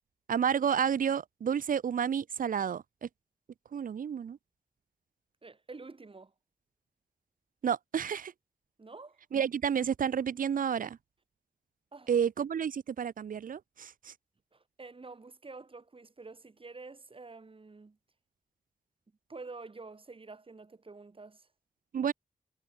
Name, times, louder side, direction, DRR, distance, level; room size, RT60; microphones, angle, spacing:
voice 1, 0.3-3.1 3.7-4.4 7.6-8.3 9.3-11.0 12.1-14.1 21.9-22.1, right 8 dB, 75° right, 0.5 m, -30 dB
voice 2, 5.4-6.3 8.8-9.2 11.9-12.1 14.5-18.0 19.3-21.5, right 3 dB, 40° right, 2.4 m, -48 dB
wide cardioid pair, 95°, 14 cm